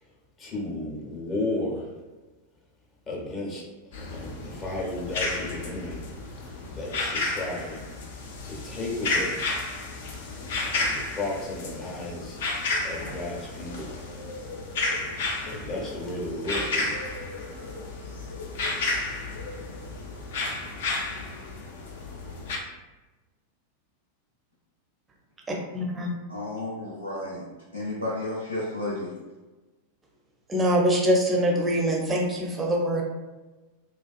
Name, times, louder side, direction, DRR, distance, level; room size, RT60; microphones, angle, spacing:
voice 1, 0.4-1.9 3.1-3.6 3.9-6.0 6.4-7.8 8.4-9.5 10.2-12.4 12.8-13.9 15.5-17.0, left 2 dB, 25° left, -3 dB, 0.7 m, -34 dB
sound 1, 3.9-22.6, left 3 dB, 55° left, 0.4 m, -32 dB
voice 2, 25.5-26.1 30.5-33.0, equal, 15° right, 0 dB, 0.5 m, -24 dB
voice 3, 26.3-27.5 27.7-29.1, left 2 dB, 90° right, -6 dB, 0.5 m, -32 dB
2.4 x 2.3 x 2.3 m, 1.2 s
figure-of-eight pair, 90°, 0 cm